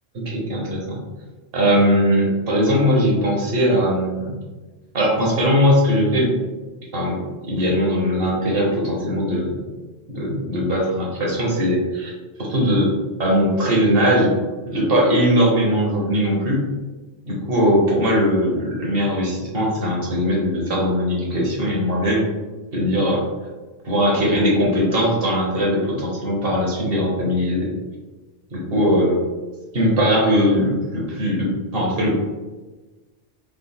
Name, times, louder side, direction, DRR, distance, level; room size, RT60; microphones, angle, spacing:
voice 1, 0.1-1.0 1.5-4.3 4.9-6.3 6.9-9.6 10.1-12.1 12.4-12.9 13.2-14.3 14.7-16.6 17.2-22.3 22.7-23.2 23.8-27.7 28.5-29.2 29.7-32.1, equal, 55° right, -2 dB, 1.1 m, -20 dB
3.5 x 2.3 x 3.7 m, 1.2 s
omnidirectional pair, 1.2 m